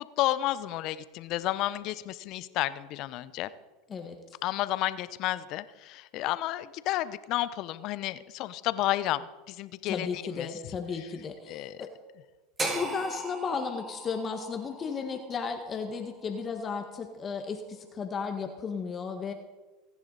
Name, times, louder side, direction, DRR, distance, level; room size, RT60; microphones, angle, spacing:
voice 1, 0.0-3.5 4.4-10.5 11.5-11.8, left 15 dB, 55° left, 15 dB, 0.8 m, -31 dB
voice 2, 9.8-11.9 12.7-19.3, left 5 dB, 30° left, 5 dB, 1.6 m, -34 dB
sound 1, 12.6-16.7, right 2 dB, 25° right, 4.1 m, -38 dB
25.5 x 10.5 x 4.1 m, 1.2 s
hypercardioid pair, 95°, 0 cm